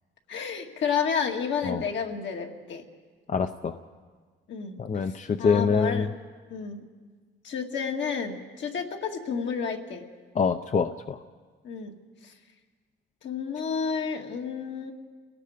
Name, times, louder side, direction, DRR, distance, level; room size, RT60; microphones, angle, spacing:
voice 1, 0.3-2.8 4.5-6.1 6.5-6.8 7.4-10.0 11.6-12.0 12.2-12.3 13.2-14.9, left 6 dB, 70° left, 2 dB, 2.2 m, -31 dB
voice 2, 3.3-3.8 4.8-6.1 10.4-11.2, left 5 dB, 40° left, 8 dB, 0.7 m, -25 dB
29.5 x 18.0 x 5.1 m, 1.5 s
cardioid pair, 90°, 20 cm